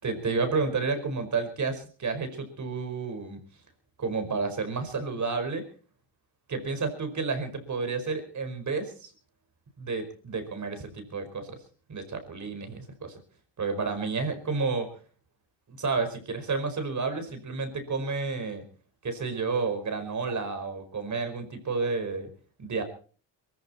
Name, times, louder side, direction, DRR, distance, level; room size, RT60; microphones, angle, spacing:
voice 1, 0.0-3.4 4.0-5.6 6.5-9.1 9.8-11.6 11.9-13.2 13.6-15.0 15.7-18.6 19.0-22.3 22.6-22.8, right 4 dB, 40° right, 8 dB, 5.0 m, -31 dB
22.5 x 14.5 x 4.4 m, 0.41 s
cardioid pair, 105°, 44 cm